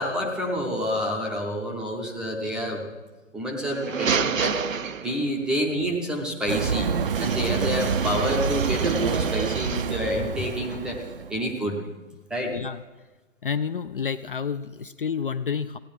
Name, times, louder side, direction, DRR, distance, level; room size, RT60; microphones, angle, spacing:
voice 1, 0.0-2.8 3.3-4.6 5.0-6.9 7.2-11.0 11.3-11.8 12.3-12.6, equal, ahead, -1 dB, 0.6 m, -28 dB
sound 1, 3.6-5.5 7.1-10.0, right 6 dB, 85° right, 0.7 m, -30 dB
sound 2, 6.5-11.5, right 6 dB, 45° right, 0.6 m, -27 dB
voice 2, 12.5-12.8 13.4-15.8, left 6 dB, 45° left, 12 dB, 0.4 m, -29 dB
15.5 x 9.9 x 5.9 m, 1.2 s
figure-of-eight pair, 130°, 39 cm